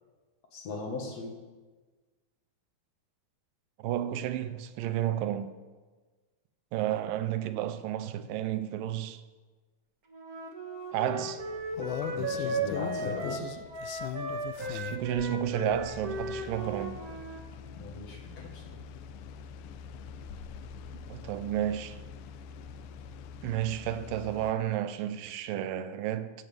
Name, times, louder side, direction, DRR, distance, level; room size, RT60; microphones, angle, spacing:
voice 1, 0.5-1.4 11.8-13.6 17.7-18.8, left 3 dB, 60° left, 2.3 m, -39 dB
voice 2, 3.8-5.5 6.7-9.2 10.9-11.4 14.6-17.0 21.1-22.0 23.4-26.3, right 11 dB, 90° right, 2.4 m, -32 dB
Wind instrument woodwind instrument, 10.1-17.4, right 2 dB, 60° right, 0.9 m, -36 dB
sound 1, 11.4-24.5, left 9 dB, 80° left, 1.9 m, -42 dB
16.0 x 12.5 x 3.4 m
omnidirectional pair, 3.8 m